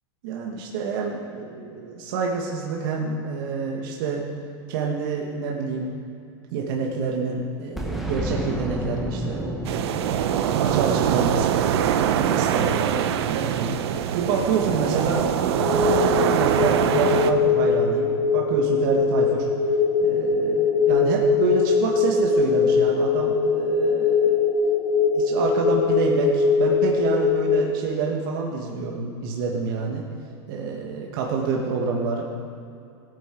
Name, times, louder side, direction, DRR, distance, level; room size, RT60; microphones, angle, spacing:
voice 1, 0.2-4.3 4.7-5.9 6.5-11.6 12.2-13.8 14.1-19.5 20.0-24.4 25.0-30.0 30.5-32.2, right 5 dB, 55° right, -1 dB, 1.5 m, -28 dB
Boom, 7.8-12.4, right 1 dB, ahead, 1.1 m, -32 dB
sound 1, 9.6-17.3, right 9 dB, 75° right, 0.8 m, -23 dB
sound 2, 15.6-27.6, left 5 dB, 80° left, 2.0 m, -21 dB
17.5 x 8.9 x 4.5 m, 2.6 s
supercardioid pair, 165°, 14 cm